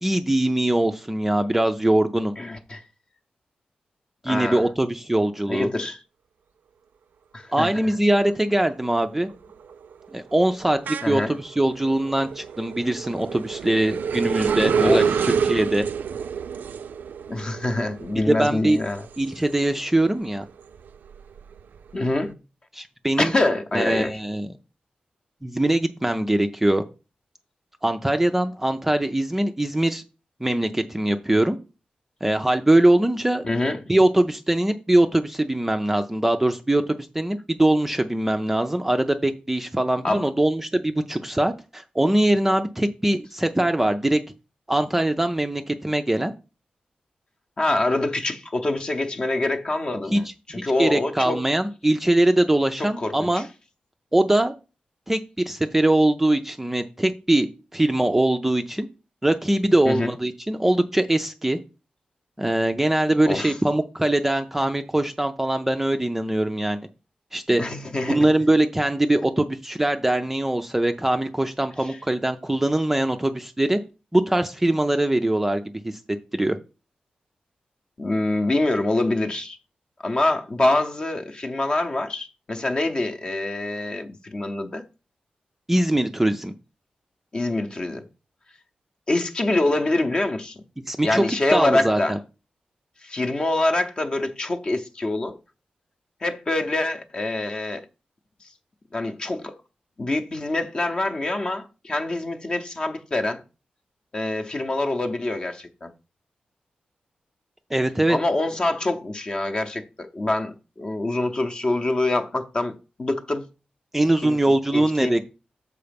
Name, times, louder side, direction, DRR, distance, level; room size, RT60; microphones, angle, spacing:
voice 1, 0.0-2.3 4.2-5.7 7.5-9.3 10.1-15.8 18.3-18.8 19.2-20.5 22.7-23.3 23.7-24.5 25.4-26.8 27.8-30.0 30.4-31.6 32.2-33.5 33.9-44.2 44.7-46.3 50.1-50.2 50.8-53.5 54.1-54.5 55.1-57.5 57.7-58.9 59.2-61.6 62.4-66.8 67.3-67.6 68.1-73.8 74.1-75.6 76.3-76.6 85.7-86.5 90.9-91.2 91.5-92.2 107.7-108.2 113.9-115.2, right 1 dB, 10° right, 0.4 m, -22 dB
voice 2, 2.4-2.8 4.3-4.6 5.5-6.0 7.3-7.9 11.0-11.4 14.7-15.1 17.3-19.0 21.9-22.4 23.2-24.2 33.4-33.8 40.0-40.3 47.6-51.4 53.0-53.4 59.9-60.1 63.3-63.5 67.6-68.3 71.8-72.0 78.0-79.6 80.0-84.9 87.3-88.1 89.1-90.6 91.0-92.2 93.0-95.4 96.2-97.9 98.9-99.6 100.0-103.4 104.1-105.9 108.1-113.5 114.2-114.4 114.7-115.2, left 2 dB, 30° left, 0.7 m, -25 dB
sound 1, 7.9-8.3 8.7-20.0 20.4-22.1, right 6 dB, 85° right, 0.4 m, -28 dB
6.8 x 4.7 x 5.2 m
wide cardioid pair, 180°, 3 cm